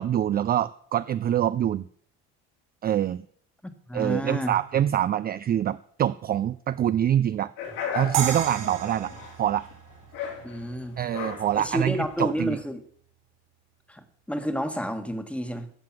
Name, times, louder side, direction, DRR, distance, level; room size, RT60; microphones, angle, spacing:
voice 1, 0.0-1.9 2.8-3.2 3.9-7.5 7.9-9.1 9.4-9.7 11.0-12.6, right 11 dB, 30° right, 14 dB, 0.4 m, -25 dB
voice 2, 3.9-4.6 10.4-11.0 11.5-12.8 13.9-15.7, equal, 5° left, 9 dB, 1.4 m, -30 dB
sound 1, 7.6-12.6, left 6 dB, 75° left, 4.6 m, -37 dB
sound 2, 8.1-11.2, right 9 dB, 80° right, 3.4 m, -33 dB
13.5 x 7.7 x 6.0 m, 0.62 s
supercardioid pair, 95°, 31 cm